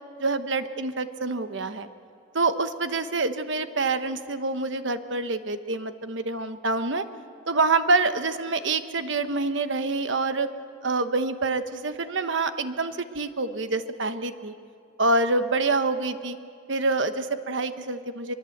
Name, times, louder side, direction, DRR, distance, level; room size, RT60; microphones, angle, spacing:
voice 1, 0.2-1.9 2.3-7.0 7.5-10.5 10.8-14.5 15.0-16.4 16.7-18.3, right 3 dB, 65° right, 9 dB, 1.2 m, -26 dB
23.5 x 23.0 x 8.0 m, 2.3 s
head